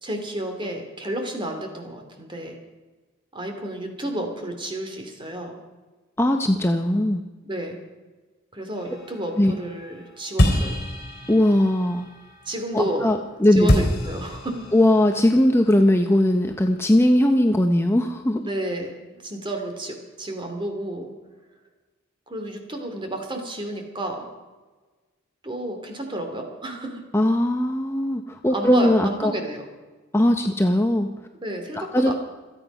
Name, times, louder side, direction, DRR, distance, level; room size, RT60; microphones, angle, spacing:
voice 1, 0.0-2.6 3.3-5.6 7.4-7.8 8.5-10.8 12.5-13.1 13.6-14.7 18.4-21.1 22.3-24.3 25.4-27.0 28.5-29.7 31.4-32.1, right 1 dB, 25° right, 4 dB, 2.6 m, -31 dB
voice 2, 6.2-7.2 9.4-9.6 11.3-12.1 12.7-13.7 14.7-18.4 27.1-29.3 30.1-31.1 31.7-32.1, left 1 dB, 10° left, 5 dB, 0.7 m, -19 dB
sound 1, 8.8-13.3 13.7-17.1, equal, 50° left, 3.5 m, -27 dB
26.5 x 9.1 x 5.4 m, 1.3 s
head